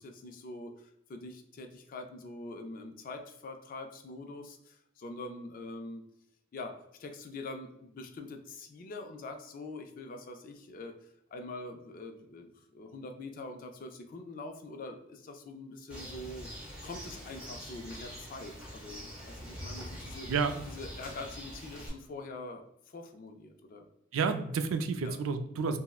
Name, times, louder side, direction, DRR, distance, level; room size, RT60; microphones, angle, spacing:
voice 1, 0.0-6.1 6.5-16.5 16.8-20.3 20.7-23.9 25.0-25.2, left 2 dB, 45° left, 5 dB, 0.4 m, -44 dB
Bird, 15.9-21.9, equal, 5° right, 0.9 m, -44 dB
voice 2, 24.1-25.8, right 5 dB, 80° right, 8 dB, 0.3 m, -30 dB
3.6 x 2.0 x 2.3 m, 0.77 s
head